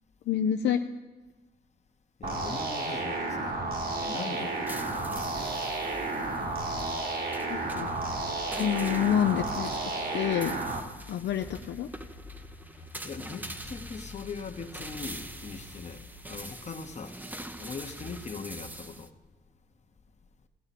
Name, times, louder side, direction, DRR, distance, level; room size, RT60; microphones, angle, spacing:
voice 1, 0.3-0.8 7.5-7.9 8.6-9.7 10.1-10.6 11.1-11.9, left 9 dB, 65° left, 0.5 m, -27 dB
voice 2, 2.2-3.6 4.0-5.6 13.0-17.2 17.6-19.1, left 5 dB, 35° left, 0.9 m, -41 dB
sound 1, 2.2-10.8, right 2 dB, 50° right, 1.6 m, -32 dB
sound 2, 4.4-19.1, right 1 dB, 10° right, 0.6 m, -45 dB
sound 3, 5.4-16.4, left 3 dB, 85° left, 1.2 m, -50 dB
17.0 x 7.8 x 4.2 m
cardioid pair, 90°, 20 cm